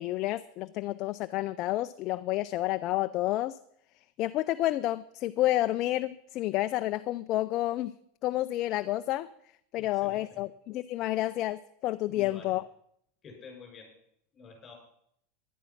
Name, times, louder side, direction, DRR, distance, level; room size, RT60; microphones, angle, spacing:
voice 1, 0.0-3.6 4.2-7.9 8.2-9.3 9.7-12.6, left 15 dB, 40° left, 11 dB, 0.5 m, -30 dB
voice 2, 9.7-10.4 12.1-12.5 13.2-13.9 14.3-14.7, left 4 dB, 20° left, 2 dB, 6.4 m, -49 dB
16.5 x 11.0 x 5.9 m, 0.71 s
supercardioid pair, 150°, 0 cm